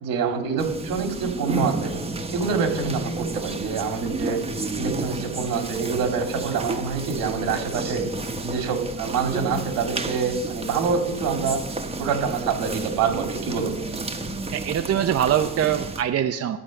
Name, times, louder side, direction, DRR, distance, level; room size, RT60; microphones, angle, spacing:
voice 1, 0.0-1.9 2.3-4.4 4.8-8.0 8.4-11.6 12.0-13.7, right 5 dB, 90° right, 4 dB, 2.7 m, -26 dB
sound 1, 0.6-16.0, right 2 dB, 20° right, 1.1 m, -31 dB
voice 2, 14.5-16.6, right 10 dB, 45° right, 7 dB, 0.7 m, -23 dB
14.0 x 8.5 x 6.5 m, 0.98 s
cardioid pair, 135°, 33 cm